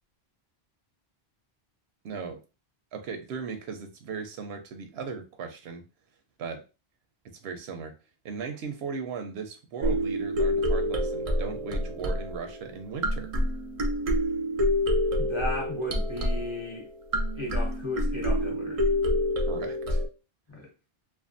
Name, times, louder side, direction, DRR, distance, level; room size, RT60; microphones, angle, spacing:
voice 1, 2.0-2.4 2.9-5.8 6.4-6.6 7.4-7.9 8.2-13.3 19.5-20.0, right 5 dB, 80° right, 0.8 m, -37 dB
sound 1, 9.8-20.1, left 1 dB, 50° right, 0.4 m, -27 dB
voice 2, 15.2-16.9 17.4-18.8 20.5-20.7, left 1 dB, 30° left, 0.7 m, -35 dB
2.5 x 2.3 x 2.5 m
omnidirectional pair, 1.1 m